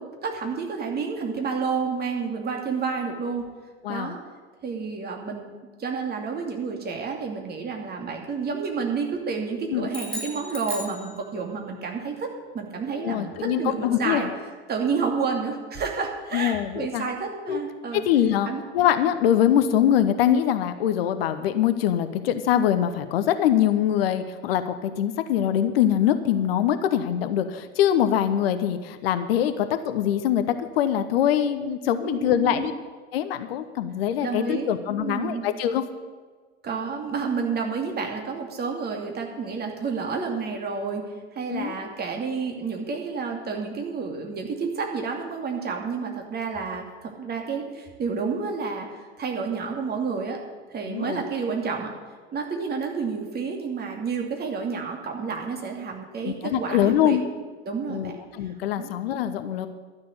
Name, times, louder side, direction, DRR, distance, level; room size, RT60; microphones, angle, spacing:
voice 1, 0.0-3.5 3.9-4.2 4.6-5.5 5.8-12.3 12.5-14.3 14.7-18.1 18.5-18.6 32.0-32.7 34.2-35.5 36.6-41.0 41.3-50.4 50.7-51.9 52.3-57.2 57.7-58.1 58.8-58.9, right 5 dB, 30° right, 2 dB, 2.6 m, -30 dB
sound 1, 9.9-11.7, equal, 5° left, 3.4 m, -36 dB
voice 2, 13.0-14.3 16.3-17.0 17.5-17.6 17.9-32.7 33.1-35.8 41.5-41.7 50.9-51.2 56.2-57.2 57.9-59.7, left 10 dB, 60° left, 10 dB, 0.9 m, -23 dB
12.0 x 6.7 x 9.5 m, 1.4 s
figure-of-eight pair, 80°, 34 cm